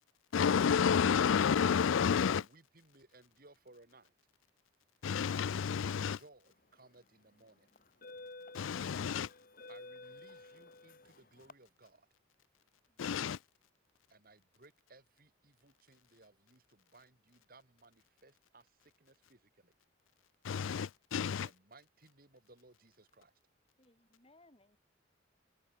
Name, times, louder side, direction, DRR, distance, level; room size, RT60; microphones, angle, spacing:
voice 1, 0.3-2.4 5.0-6.2 8.5-9.3 13.0-13.4 20.4-21.5, left 7 dB, 85° left, 0.4 m, -30 dB
voice 2, 2.2-4.1 6.0-7.7 9.7-12.1 14.1-19.7 21.3-23.4, right 2 dB, 50° right, 3.3 m, -62 dB
sound 1, 6.7-7.0 7.7-11.5, left 2 dB, 45° left, 2.8 m, -52 dB
voice 3, 12.9-13.3 23.8-24.8, left 2 dB, 30° left, 3.8 m, -67 dB
head